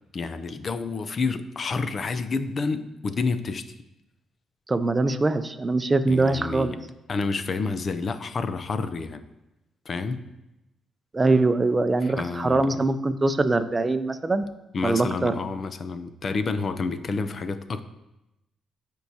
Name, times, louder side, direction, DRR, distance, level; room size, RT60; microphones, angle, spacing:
voice 1, 0.1-3.7 6.1-6.8 7.1-9.2 9.9-10.2 12.0-12.8 14.7-17.8, left 4 dB, 45° left, 11 dB, 0.6 m, -29 dB
voice 2, 4.7-6.8 11.1-14.5 14.8-15.4, right 2 dB, 25° right, 11 dB, 0.5 m, -23 dB
13.0 x 4.6 x 2.8 m, 0.93 s
cardioid pair, 90°, 0 cm